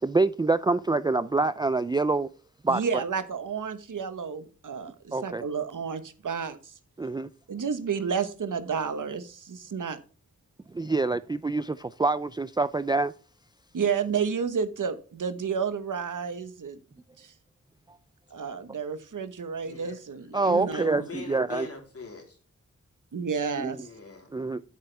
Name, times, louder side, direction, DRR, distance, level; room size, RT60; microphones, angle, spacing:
voice 1, 0.0-2.3 2.6-2.8 5.1-5.4 7.0-7.3 10.7-13.1 20.3-21.7 23.6-23.8 24.3-24.6, right 3 dB, 15° right, 0.3 m, -26 dB
voice 2, 2.7-6.7 7.5-10.0 13.7-16.8 17.2-17.3 18.3-21.1 23.1-23.9, right 6 dB, 85° right, 1.2 m, -31 dB
voice 3, 19.6-20.0 20.3-22.4 23.7-24.3, left 4 dB, 50° left, 3.6 m, -42 dB
10.5 x 8.2 x 3.4 m
wide cardioid pair, 85°, 30 cm